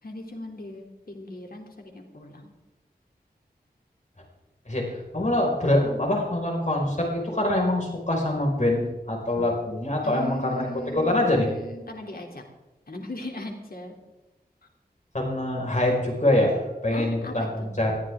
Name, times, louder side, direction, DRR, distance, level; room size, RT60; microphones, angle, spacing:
voice 1, 0.0-2.6 10.0-12.4 12.9-13.9 16.9-17.7, left 1 dB, 65° left, 1 dB, 3.1 m, -38 dB
voice 2, 4.7-11.5 15.1-17.9, left 1 dB, 45° left, 0 dB, 5.2 m, -24 dB
21.0 x 14.0 x 3.7 m, 1.1 s
wide cardioid pair, 55°, 17 cm